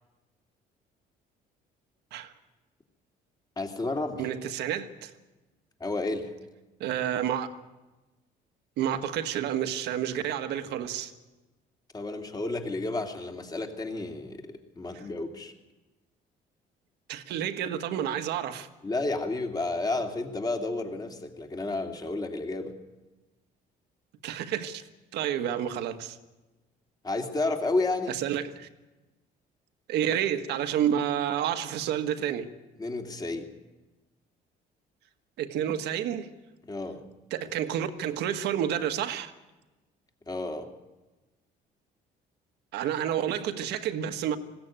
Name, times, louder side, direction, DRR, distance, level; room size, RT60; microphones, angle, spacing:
voice 1, 3.6-4.3 5.8-6.3 11.9-14.5 14.8-15.5 18.8-22.7 27.0-28.1 32.8-33.5 36.7-37.0 40.3-40.7, left 2 dB, 25° left, 2.6 m, -31 dB
voice 2, 4.2-5.1 6.8-7.5 8.8-11.1 14.9-15.0 17.1-18.7 24.2-24.8 25.1-26.2 28.1-28.7 29.9-32.5 35.4-36.3 37.3-39.3 42.7-44.4, right 10 dB, 80° right, 1.6 m, -29 dB
20.0 x 16.5 x 9.0 m
cardioid pair, 110°, 17 cm